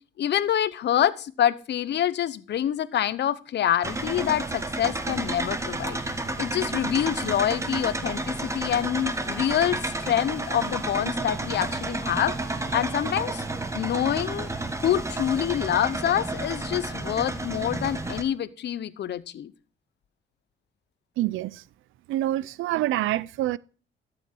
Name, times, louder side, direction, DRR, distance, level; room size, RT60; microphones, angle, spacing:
voice 1, 0.2-6.0 6.4-13.4 13.7-14.5 14.8-19.5, left 10 dB, 60° left, 0.8 m, -26 dB
sound 1, 3.8-18.2, right 2 dB, 15° right, 1.4 m, -31 dB
voice 2, 21.2-21.6 22.1-23.6, right 15 dB, 80° right, 0.5 m, -26 dB
12.5 x 7.2 x 4.5 m
cardioid pair, 90°, 20 cm